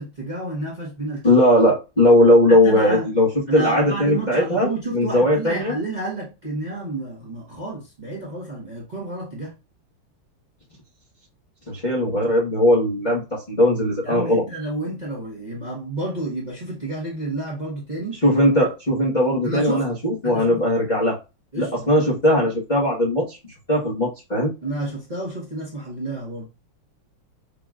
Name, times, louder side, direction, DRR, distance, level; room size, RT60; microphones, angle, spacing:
voice 1, 0.0-1.3 2.5-3.0 3.5-9.5 14.0-18.2 19.4-19.9 20.2-20.6 21.5-21.9 24.6-26.5, right 2 dB, 25° right, 1.2 m, -30 dB
voice 2, 1.2-5.7 11.7-14.4 18.2-21.2 21.6-23.4 23.7-24.5, left 1 dB, 25° left, 1.2 m, -19 dB
6.6 x 2.9 x 2.4 m
omnidirectional pair, 2.4 m